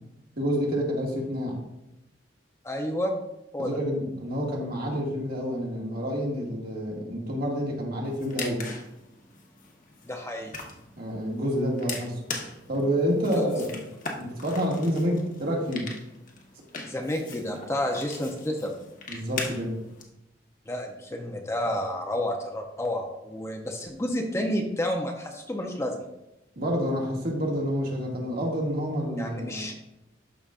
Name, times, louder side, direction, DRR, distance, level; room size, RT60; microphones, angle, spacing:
voice 1, 0.4-1.6 3.6-8.6 11.0-12.2 12.7-13.7 14.2-15.9 19.1-19.8 26.6-29.7, equal, 55° right, -2 dB, 2.0 m, -28 dB
voice 2, 2.6-3.1 3.5-3.8 10.0-10.5 13.3-13.4 16.9-18.7 20.7-26.1 29.2-29.7, left 1 dB, 15° left, 2 dB, 0.7 m, -30 dB
sound 1, 8.0-20.0, left 4 dB, 45° left, 1.1 m, -40 dB
12.5 x 5.1 x 2.5 m, 0.90 s
head